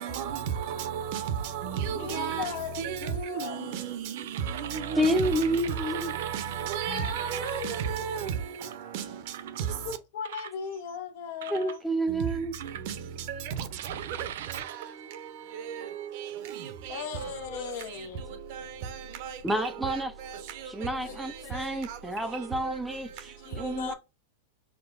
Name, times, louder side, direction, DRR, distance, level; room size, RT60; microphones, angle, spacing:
voice 1, 0.0-2.4 2.8-4.1 4.5-5.4 5.8-8.3 8.9-9.0 12.9-13.0 13.5-13.6 19.2-19.3, right 8 dB, 55° right, 0.8 m, -32 dB
voice 2, 1.9-3.8 6.9-8.2 9.8-11.8 16.9-18.4 20.8-21.9 23.4-23.9, left 8 dB, 60° left, 0.9 m, -39 dB
sound 1, 4.1-8.7 9.3-9.6 10.2-11.0 11.4-11.8 12.5-13.2 13.8-16.1, right 11 dB, 75° right, 0.3 m, -42 dB
voice 3, 5.0-6.1 11.5-12.5 19.4-20.1 20.7-23.9, right 1 dB, 5° right, 0.4 m, -29 dB
6.0 x 2.2 x 2.4 m
supercardioid pair, 135°, 0 cm